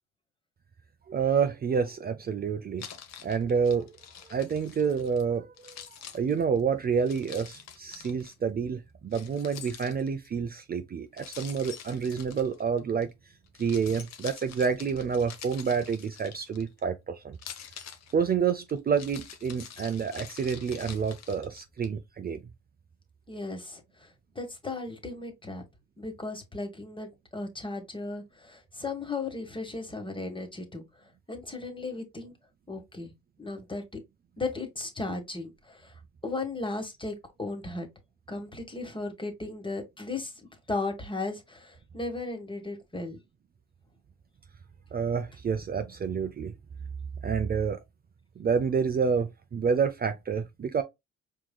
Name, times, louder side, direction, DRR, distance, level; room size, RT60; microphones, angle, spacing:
voice 1, 1.1-2.9 3.2-3.9 4.3-5.7 6.1-13.1 13.6-17.4 18.1-22.4 44.9-46.5 47.2-47.8 48.4-50.8, right 6 dB, 30° right, 0.5 m, -28 dB
Keys jangling, 2.8-5.2 5.6-8.3 9.1-10.3 11.2-13.0 13.5-16.8 17.3-21.9, left 8 dB, 65° left, 0.9 m, -46 dB
voice 2, 23.3-25.6 26.0-30.8 31.3-32.3 32.7-33.1 33.4-33.8 34.4-35.9 36.2-37.9 38.3-40.3 40.7-43.2, left 3 dB, 15° left, 1.4 m, -36 dB
4.5 x 3.7 x 2.2 m
cardioid pair, 80°, 29 cm